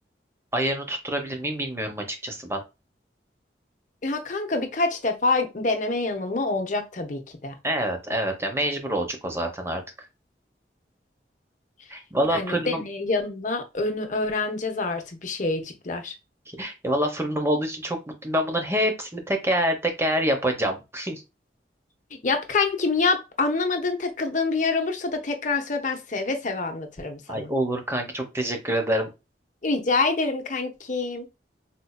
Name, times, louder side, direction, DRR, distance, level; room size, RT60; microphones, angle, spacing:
voice 1, 0.5-2.6 7.6-9.8 11.9-12.8 16.6-21.2 27.3-29.1, right 1 dB, 15° right, 0.8 m, -26 dB
voice 2, 4.0-7.5 12.3-16.1 22.2-27.5 29.6-31.3, left 3 dB, 45° left, 0.8 m, -26 dB
4.3 x 2.7 x 2.2 m
head